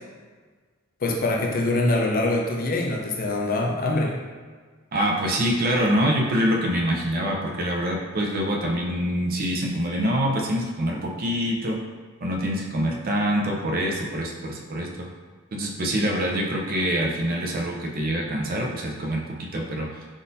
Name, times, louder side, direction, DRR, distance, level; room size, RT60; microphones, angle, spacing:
voice 1, 1.0-4.2, left 2 dB, 45° left, 0 dB, 0.4 m, -24 dB
voice 2, 4.9-11.8 12.2-14.9 15.5-19.9, equal, 45° right, -1 dB, 0.5 m, -25 dB
3.8 x 2.6 x 2.5 m, 1.5 s
head